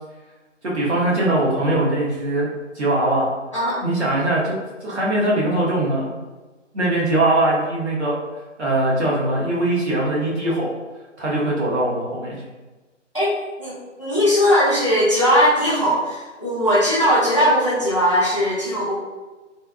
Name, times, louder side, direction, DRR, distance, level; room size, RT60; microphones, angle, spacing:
voice 1, 0.6-2.5 2.7-3.3 3.8-4.5 4.8-6.1 6.7-8.1 8.6-10.7 11.2-12.4, right 1 dB, 60° right, -5 dB, 1.2 m, -21 dB
voice 2, 13.6-18.9, equal, 25° left, -10 dB, 0.5 m, -19 dB
3.3 x 2.6 x 2.3 m, 1.2 s
figure-of-eight pair, 155°, 37 cm